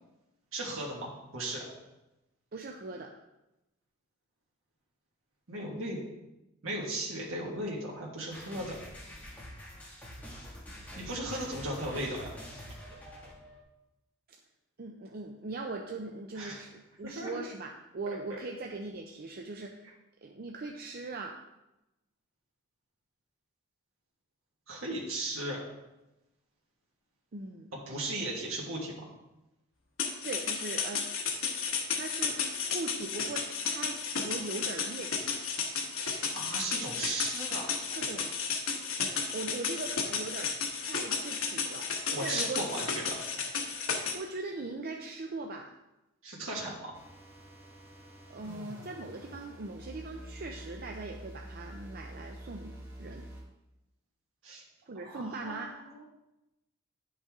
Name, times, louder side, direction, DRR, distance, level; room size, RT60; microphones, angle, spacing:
voice 1, 0.5-1.6 5.5-6.0 6.6-8.8 11.0-12.4 16.4-16.6 17.0-17.3 18.3-18.4 24.7-25.6 27.7-29.1 36.0-37.7 42.1-43.2 46.2-46.9 54.4-54.6 55.0-56.0, right 1 dB, 80° right, -4 dB, 1.7 m, -36 dB
voice 2, 2.5-3.1 14.8-19.9 20.2-21.4 27.3-27.7 30.2-31.2 31.9-32.4 32.7-35.3 37.5-37.6 38.0-38.3 39.0-41.9 42.2-42.9 44.1-45.7 48.3-53.3 54.9-55.7, right 3 dB, 45° right, 2 dB, 0.5 m, -40 dB
sound 1, 8.3-13.6, equal, 10° left, 1.8 m, -46 dB
sound 2, 30.0-44.1, left 5 dB, 85° left, 1.2 m, -33 dB
sound 3, 46.9-53.5, equal, 10° right, 1.3 m, -47 dB
10.0 x 5.5 x 3.6 m, 0.96 s
head